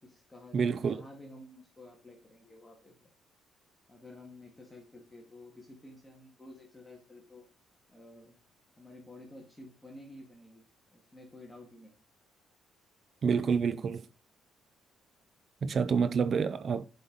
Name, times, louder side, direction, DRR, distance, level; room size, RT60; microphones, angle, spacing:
voice 1, 0.0-3.1 3.9-7.4 7.9-8.4 8.8-10.6 10.9-11.9 15.7-16.0, left 1 dB, 10° left, 1.9 m, -52 dB
voice 2, 0.5-1.0 13.2-14.1 15.6-16.9, right 6 dB, 45° right, 0.5 m, -28 dB
7.6 x 5.5 x 3.9 m
cardioid pair, 110°, 0 cm